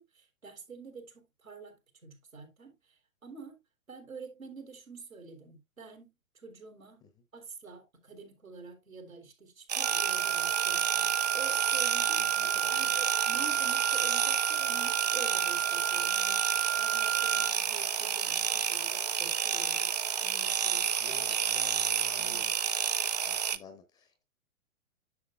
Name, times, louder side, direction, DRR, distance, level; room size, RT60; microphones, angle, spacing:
voice 1, 0.0-2.7 3.2-3.6 3.9-6.1 6.4-7.0 7.3-12.2 12.7-21.4 21.9-22.4, right 4 dB, 75° right, 3.3 m, -48 dB
sound 1, 9.7-23.6, right 8 dB, 35° right, 0.4 m, -30 dB
Wind instrument woodwind instrument, 9.8-17.6, right 12 dB, 50° right, 0.8 m, -32 dB
voice 2, 12.2-12.9 18.5-18.6 21.0-22.5 23.3-24.2, left 4 dB, 10° left, 0.7 m, -53 dB
10.5 x 6.5 x 2.2 m
figure-of-eight pair, 115°, 41 cm